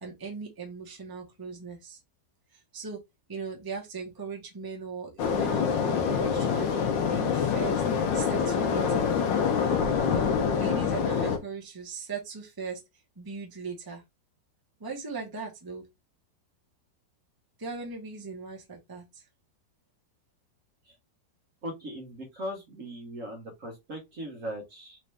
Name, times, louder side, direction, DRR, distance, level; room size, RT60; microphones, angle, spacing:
voice 1, 0.0-2.0 2.5-3.0 3.3-7.8 8.1-9.1 10.0-10.3 10.5-12.8 13.2-14.0 14.8-15.8 17.6-19.3, right 5 dB, 15° right, 1.0 m, -38 dB
sound 1, 5.2-11.4, left 6 dB, 90° left, 1.5 m, -26 dB
voice 2, 21.6-25.0, equal, 50° right, 1.3 m, -39 dB
4.2 x 2.7 x 3.3 m
omnidirectional pair, 1.9 m